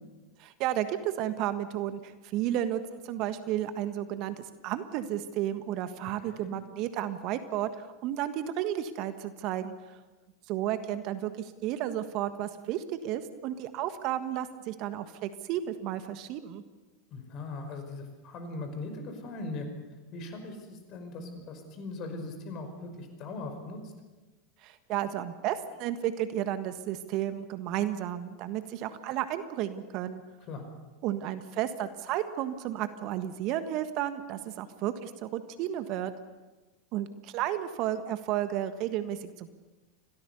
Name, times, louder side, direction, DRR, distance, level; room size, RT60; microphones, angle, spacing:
voice 1, 0.4-4.3 4.6-10.0 10.5-16.6 24.6-30.2 31.0-36.1 36.9-39.5, right 12 dB, 50° right, 11 dB, 1.5 m, -32 dB
voice 2, 6.2-6.5 17.1-19.7 20.1-23.9 30.5-30.7, left 2 dB, 45° left, 6 dB, 5.3 m, -40 dB
26.0 x 18.0 x 7.0 m, 1.2 s
hypercardioid pair, 85°, 0 cm